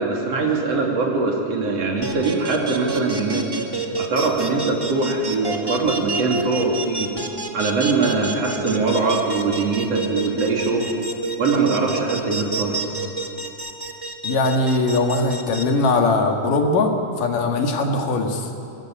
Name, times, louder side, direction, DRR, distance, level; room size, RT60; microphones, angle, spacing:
voice 1, 0.0-3.5 4.0-7.1 7.5-10.9 11.4-12.8, right 3 dB, 50° right, 0 dB, 3.7 m, -22 dB
sound 1, 2.0-15.6, right 3 dB, 20° right, 0.5 m, -28 dB
voice 2, 14.2-16.9 17.2-18.5, left 3 dB, 85° left, 3 dB, 3.6 m, -20 dB
22.5 x 19.5 x 8.8 m, 2.8 s
omnidirectional pair, 3.7 m